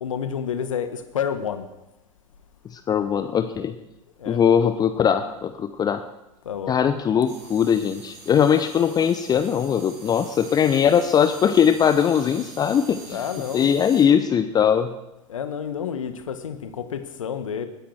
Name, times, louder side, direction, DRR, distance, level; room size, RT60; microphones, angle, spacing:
voice 1, 0.0-1.7 4.2-4.4 6.4-6.7 13.1-13.7 15.3-17.7, left 8 dB, 70° left, 10 dB, 1.3 m, -29 dB
voice 2, 2.7-3.7 4.3-6.0 6.7-13.2 13.5-14.9, left 8 dB, 25° left, 10 dB, 0.7 m, -20 dB
sound 1, 7.3-14.0, right 4 dB, 45° right, 6.0 m, -44 dB
19.5 x 10.0 x 4.8 m, 0.93 s
figure-of-eight pair, 85°, 17 cm